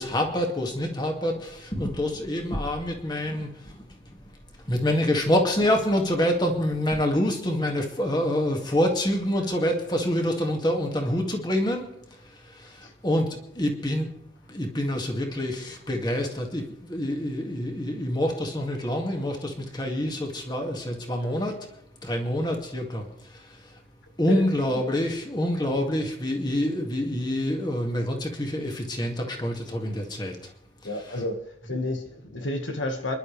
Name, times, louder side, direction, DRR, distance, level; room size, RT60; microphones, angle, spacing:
voice 1, 0.0-3.8 4.7-11.9 12.3-14.1 14.5-21.6 22.0-23.5 24.2-30.4, left 1 dB, 20° left, 2.2 m, -26 dB
voice 2, 30.8-31.4 31.6-33.2, left 1 dB, 75° left, 1.7 m, -30 dB
28.5 x 11.5 x 3.4 m
head